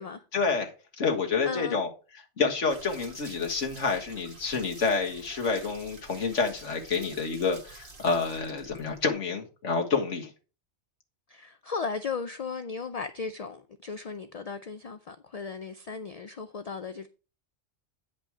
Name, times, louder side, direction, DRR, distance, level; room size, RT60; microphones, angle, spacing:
voice 1, 0.3-1.9 2.4-10.3, left 4 dB, 80° left, 1.9 m, -28 dB
voice 2, 1.4-1.8 11.3-17.1, left 5 dB, 50° left, 0.4 m, -36 dB
sound 1, 2.7-9.1, right 3 dB, 45° right, 1.8 m, -49 dB
9.0 x 5.2 x 4.7 m
omnidirectional pair, 1.2 m